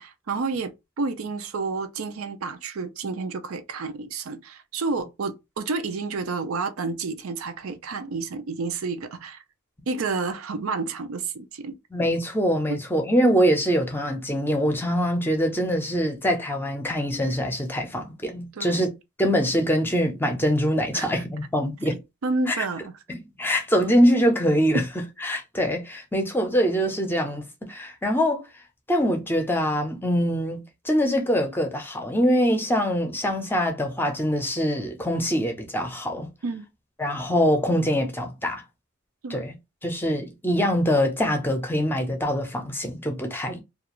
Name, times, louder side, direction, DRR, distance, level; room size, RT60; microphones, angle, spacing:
voice 1, 0.0-9.4 9.9-11.8 12.7-12.8 18.5-18.8 20.9-21.1 21.9-23.0 36.4-36.7 39.2-39.4, right 4 dB, 85° right, 0.5 m, -30 dB
voice 2, 11.9-18.9 19.2-22.0 22.5-22.6 23.1-24.8 25.2-28.4 28.9-36.3 37.0-38.6 39.3-39.5 39.8-43.6, equal, 10° left, 0.6 m, -24 dB
2.4 x 2.4 x 2.9 m
head